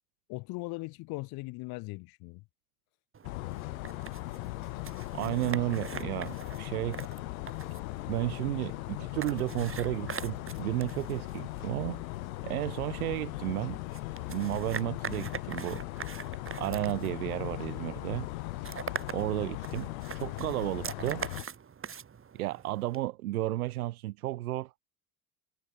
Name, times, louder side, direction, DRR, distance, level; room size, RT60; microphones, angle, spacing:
voice 1, 0.3-2.4, left 24 dB, 60° left, 1.1 m, -39 dB
sound 1, 3.1-23.0, right 7 dB, 30° right, 3.1 m, -44 dB
sound 2, 3.2-21.5, left 24 dB, 75° left, 0.6 m, -39 dB
voice 2, 5.1-7.0 8.1-12.1 12.4-13.8 14.3-15.8 16.6-18.3 19.1-19.9 20.1-21.3 22.3-24.7, right 16 dB, 90° right, 0.6 m, -33 dB
hypercardioid pair, 75°, 42 cm